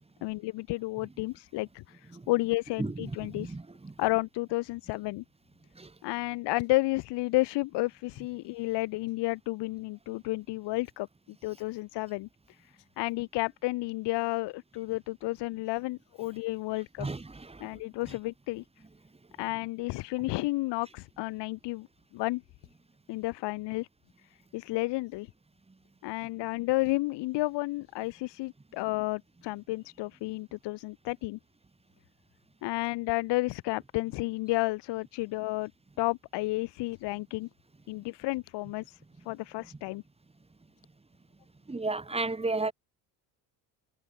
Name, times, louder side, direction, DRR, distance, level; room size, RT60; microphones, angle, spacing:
voice 1, 0.2-3.5 4.0-5.2 6.0-11.1 11.4-12.3 12.6-12.7 13.0-17.1 17.6-18.6 19.4-21.9 22.1-22.4 23.1-23.9 24.5-25.3 26.0-31.4 32.6-35.7 36.0-37.5 37.9-39.0 39.3-40.0, left 20 dB, 75° left, 0.8 m, -31 dB
voice 2, 3.3-3.9 5.8-5.9 17.0-17.7 41.7-42.7, right 3 dB, 15° right, 2.0 m, -33 dB
cardioid pair, 95°, 41 cm